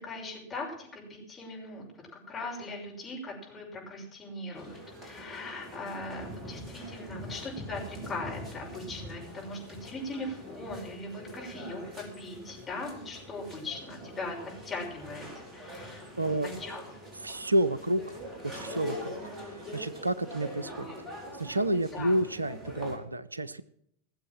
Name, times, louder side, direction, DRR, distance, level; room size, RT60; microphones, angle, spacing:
voice 1, 0.0-1.9 2.3-14.4 14.6-16.8 21.9-22.1, left 2 dB, 20° left, -2 dB, 6.0 m, -40 dB
sound 1, 4.5-23.0, equal, 20° right, 4.6 m, -43 dB
voice 2, 16.2-16.5 17.2-18.2 18.5-19.2 19.7-20.9 21.4-23.6, right 1 dB, 80° right, 17 dB, 0.6 m, -29 dB
19.0 x 7.4 x 7.5 m, 0.72 s
figure-of-eight pair, 90°, 0 cm